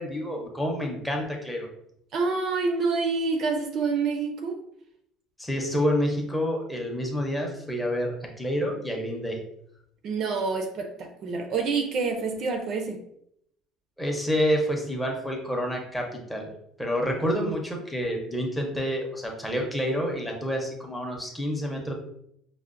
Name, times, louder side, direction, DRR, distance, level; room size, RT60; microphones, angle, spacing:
voice 1, 0.0-1.7 5.4-9.4 14.0-16.5 16.8-21.9, equal, 5° left, 0 dB, 0.6 m, -28 dB
voice 2, 2.1-4.6 10.0-13.0, right 4 dB, 40° right, 5 dB, 0.4 m, -27 dB
5.5 x 2.0 x 2.5 m, 0.74 s
cardioid pair, 165°, 0 cm